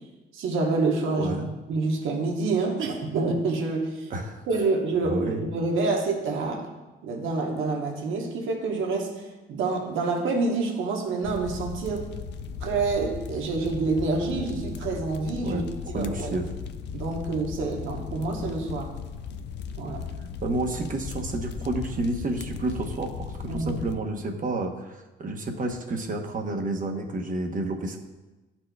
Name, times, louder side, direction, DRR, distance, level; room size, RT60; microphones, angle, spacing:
voice 1, 0.3-1.3 1.7-4.1 4.5-6.7 7.0-12.1 12.6-15.6 15.9-16.4 16.9-18.9 19.8-20.0 23.5-23.8, right 3 dB, 85° right, 1 dB, 1.1 m, -27 dB
voice 2, 1.2-1.5 4.1-4.4 5.0-5.4 15.4-15.6 15.9-16.5 20.4-28.0, right 2 dB, 40° right, 3 dB, 0.9 m, -30 dB
sound 1, 11.2-23.9, left 6 dB, 60° left, 0.4 m, -37 dB
11.5 x 4.3 x 2.3 m, 1.1 s
cardioid pair, 90°, 20 cm